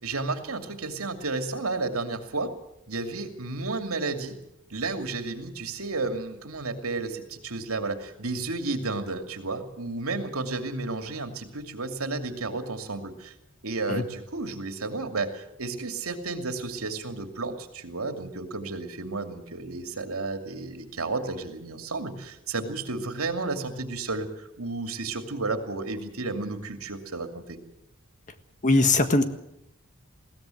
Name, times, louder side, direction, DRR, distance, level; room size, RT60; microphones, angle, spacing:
voice 1, 0.0-2.5 2.9-4.3 4.7-13.3 13.6-27.6, right 3 dB, 85° right, 6 dB, 2.6 m, -32 dB
voice 2, 28.6-29.2, left 2 dB, 35° left, 9 dB, 1.6 m, -20 dB
21.5 x 17.0 x 7.8 m, 0.82 s
head